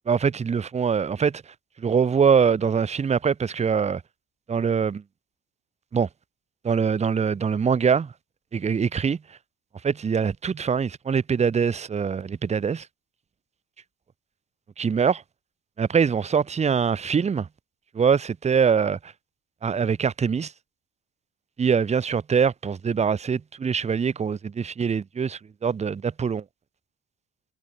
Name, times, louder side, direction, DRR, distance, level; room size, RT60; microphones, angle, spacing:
voice 1, 0.1-1.4 1.8-4.0 4.5-5.0 5.9-6.1 6.6-8.1 8.5-9.2 9.8-12.9 14.8-15.2 15.8-17.5 17.9-19.1 19.6-20.5 21.6-26.4, right 6 dB, 15° right, 0.4 m, -23 dB
supercardioid pair, 65°, 43 cm